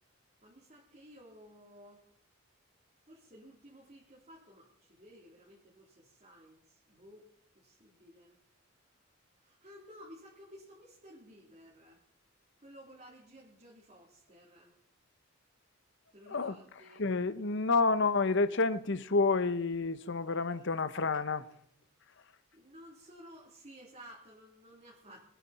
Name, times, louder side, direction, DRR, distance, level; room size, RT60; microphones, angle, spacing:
voice 1, 0.4-2.1 3.1-7.3 7.6-8.4 9.4-12.0 12.6-14.7 16.1-17.1 22.5-25.2, equal, 35° right, 3.4 m, -55 dB
voice 2, 17.0-21.4, left 3 dB, 60° left, 0.9 m, -29 dB
23.5 x 10.0 x 4.3 m
head